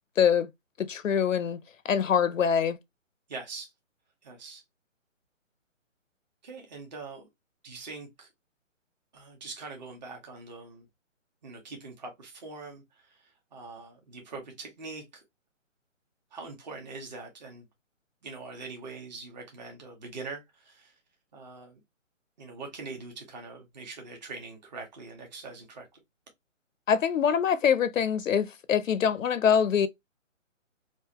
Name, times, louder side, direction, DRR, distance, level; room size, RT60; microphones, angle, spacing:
voice 1, 0.2-0.5 0.8-1.6 1.8-2.8 26.9-29.9, left 7 dB, 75° left, 0.6 m, -24 dB
voice 2, 3.3-3.7 4.2-4.6 6.4-7.3 7.6-8.3 9.1-10.9 11.4-15.2 16.3-17.6 18.2-21.0 21.3-21.8 22.4-26.0, right 3 dB, 35° right, 1.1 m, -43 dB
3.6 x 2.6 x 2.8 m
hypercardioid pair, 160°, 39 cm